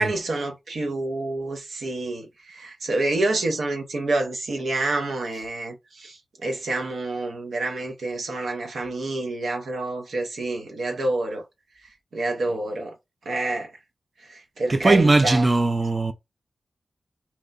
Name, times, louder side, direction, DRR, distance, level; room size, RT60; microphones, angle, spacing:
voice 1, 0.0-11.4 12.1-12.9 13.3-13.7 14.3-15.5, right 2 dB, 85° right, 0.7 m, -28 dB
voice 2, 14.7-16.1, right 2 dB, 35° right, 0.4 m, -19 dB
2.8 x 2.2 x 3.8 m
cardioid pair, 60°, 0 cm